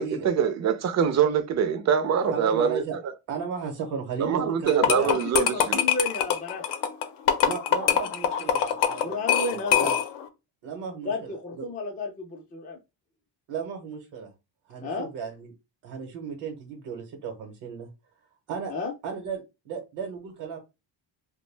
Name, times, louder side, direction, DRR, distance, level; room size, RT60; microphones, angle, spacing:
voice 1, 0.0-2.8 4.2-5.8, right 7 dB, 40° right, 0.4 m, -24 dB
voice 2, 2.3-3.0 3.3-5.1 7.4-10.0 10.6-11.7 13.5-14.3 14.7-15.5 15.8-17.9 18.5-18.7 19.0-20.6, right 6 dB, 75° right, 0.9 m, -35 dB
sound 1, 4.7-10.3, left 9 dB, 80° left, 0.6 m, -24 dB
voice 3, 4.9-6.6 9.0-9.9 11.0-12.8 14.8-15.1 18.7-18.9, left 2 dB, 20° left, 0.4 m, -32 dB
2.3 x 2.1 x 3.2 m
cardioid pair, 120°, 43 cm